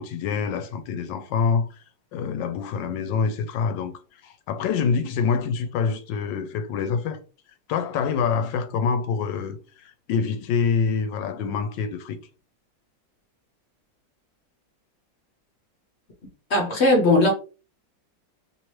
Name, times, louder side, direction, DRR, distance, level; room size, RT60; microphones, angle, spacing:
voice 1, 0.0-1.7 2.1-3.9 4.2-7.2 7.7-12.2, left 6 dB, 85° left, 1.3 m, -26 dB
voice 2, 16.5-17.3, left 2 dB, 50° left, 0.9 m, -18 dB
3.1 x 3.1 x 3.0 m
omnidirectional pair, 2.0 m